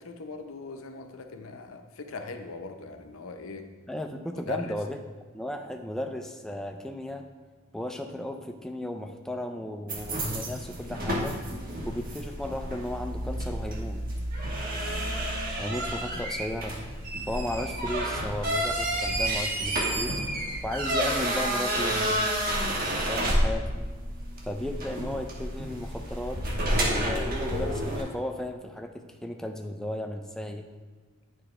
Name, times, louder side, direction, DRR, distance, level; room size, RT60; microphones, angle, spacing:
voice 1, 0.0-3.7 4.4-4.8 14.7-15.1, left 4 dB, 75° left, 6 dB, 0.7 m, -40 dB
voice 2, 3.9-5.0 5.3-7.3 7.7-11.4 11.9-14.0 15.6-16.8 17.3-20.1 20.6-22.2 23.0-23.9 24.5-26.4 26.9-30.7, left 1 dB, ahead, 4 dB, 0.3 m, -35 dB
sound 1, 9.9-28.0, right 1 dB, 45° right, 1.2 m, -30 dB
9.8 x 4.8 x 3.2 m, 1.4 s
head